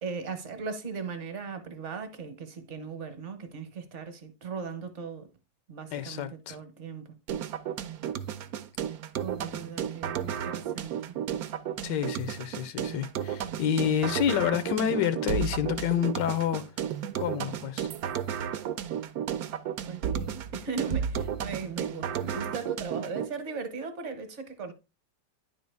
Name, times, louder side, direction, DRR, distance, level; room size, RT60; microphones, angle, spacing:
voice 1, 0.0-5.3 5.7-7.1 9.2-11.2 19.9-24.7, right 5 dB, 50° right, 1.1 m, -38 dB
voice 2, 5.9-6.6 11.8-16.6 17.2-17.9, left 9 dB, 80° left, 1.3 m, -28 dB
sound 1, 7.3-23.3, right 9 dB, 70° right, 0.9 m, -33 dB
9.8 x 4.0 x 3.4 m
omnidirectional pair, 1.9 m